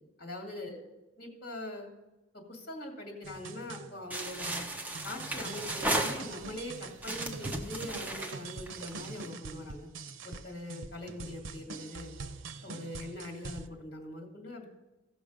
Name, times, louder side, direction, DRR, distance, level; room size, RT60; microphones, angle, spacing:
voice 1, 0.2-0.8 1.2-1.9 2.3-4.7 5.0-9.9 10.2-12.1 12.6-14.7, left 1 dB, 50° left, 0 dB, 2.4 m, -42 dB
sound 1, 3.2-13.7, right 4 dB, 90° right, 0.6 m, -44 dB
sound 2, 4.1-6.6 7.0-9.2, right 1 dB, 10° right, 0.7 m, -35 dB
15.0 x 6.2 x 5.1 m, 1.1 s
head